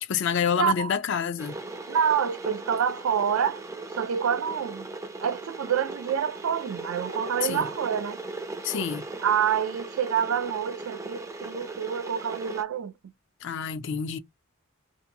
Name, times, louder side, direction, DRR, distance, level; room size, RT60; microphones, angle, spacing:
voice 1, 0.0-1.6 7.4-7.7 8.6-9.1 13.4-14.2, left 7 dB, 55° left, 0.4 m, -28 dB
voice 2, 0.6-0.9 1.9-3.6 4.0-4.9 5.2-8.2 9.2-12.9, right 8 dB, 80° right, 0.4 m, -27 dB
Water / Boiling, 1.4-12.6, right 2 dB, 15° right, 0.4 m, -38 dB
2.7 x 2.5 x 2.6 m
head